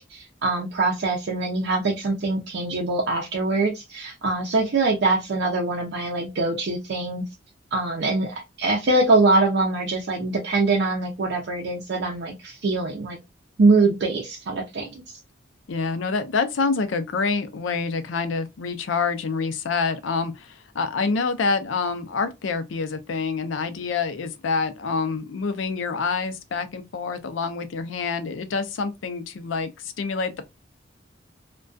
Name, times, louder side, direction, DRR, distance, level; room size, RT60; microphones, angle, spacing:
voice 1, 0.0-7.2 7.7-13.2 13.6-14.9, right 3 dB, 65° right, 0.5 m, -23 dB
voice 2, 15.7-30.4, left 4 dB, 85° left, 0.5 m, -27 dB
2.3 x 2.2 x 2.5 m
head